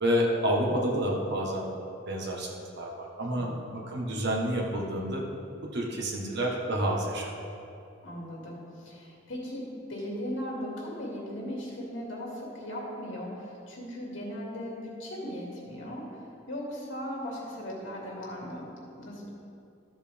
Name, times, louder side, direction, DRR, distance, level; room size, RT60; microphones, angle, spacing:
voice 1, 0.0-1.7 2.1-2.5 2.8-5.2 5.6-7.3, equal, 60° right, -1 dB, 1.5 m, -29 dB
voice 2, 8.0-16.2 16.5-19.3, equal, 85° left, -3 dB, 2.4 m, -38 dB
13.5 x 7.4 x 3.5 m, 2.6 s
head